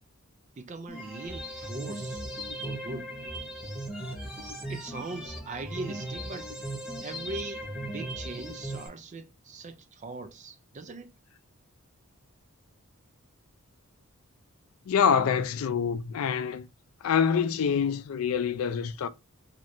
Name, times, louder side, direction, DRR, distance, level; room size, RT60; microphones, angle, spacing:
voice 1, 0.6-2.2 2.6-3.1 4.7-6.5 7.0-11.1, right 3 dB, 35° right, 0.3 m, -40 dB
sound 1, 0.9-8.9, right 1 dB, 5° right, 0.8 m, -37 dB
voice 2, 14.9-16.7 17.0-19.1, left 7 dB, 70° left, 0.3 m, -26 dB
3.1 x 2.7 x 2.5 m
head